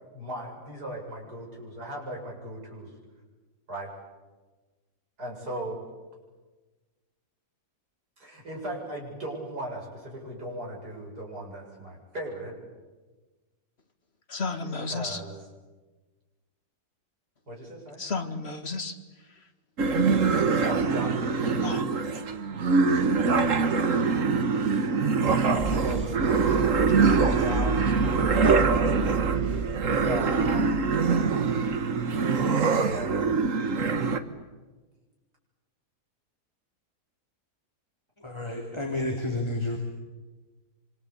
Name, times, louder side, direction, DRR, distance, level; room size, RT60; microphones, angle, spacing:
voice 1, 0.1-2.9 3.7-3.9 5.2-5.8 8.2-12.6 14.9-15.4 17.5-18.0 20.6-21.8 25.4-26.6 27.2-29.1 30.0-30.9 32.8-33.4, equal, 75° right, -1 dB, 8.1 m, -37 dB
voice 2, 14.3-15.2 18.0-19.0 21.6-21.8, left 3 dB, 40° left, 7 dB, 2.1 m, -32 dB
sound 1, 19.8-34.2, right 4 dB, 55° right, 1.7 m, -24 dB
sound 2, 24.1-31.5, right 3 dB, 10° right, 1.5 m, -33 dB
voice 3, 38.2-39.8, left 2 dB, 15° left, 1 dB, 3.0 m, -30 dB
26.0 x 26.0 x 8.6 m, 1.3 s
omnidirectional pair, 1.7 m